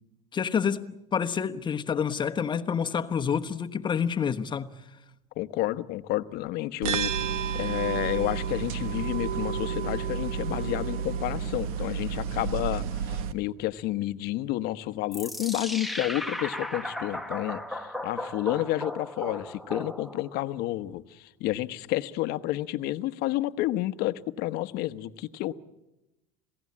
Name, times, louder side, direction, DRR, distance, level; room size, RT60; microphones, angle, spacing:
voice 1, 0.3-4.7, left 7 dB, 25° left, 1.2 m, -28 dB
voice 2, 5.4-25.5, left 16 dB, 60° left, 1.0 m, -30 dB
sound 1, 6.8-13.3, right 7 dB, 90° right, 1.4 m, -31 dB
sound 2, 15.1-20.4, left 1 dB, ahead, 1.1 m, -36 dB
27.5 x 17.0 x 8.6 m
supercardioid pair, 120°, 18 cm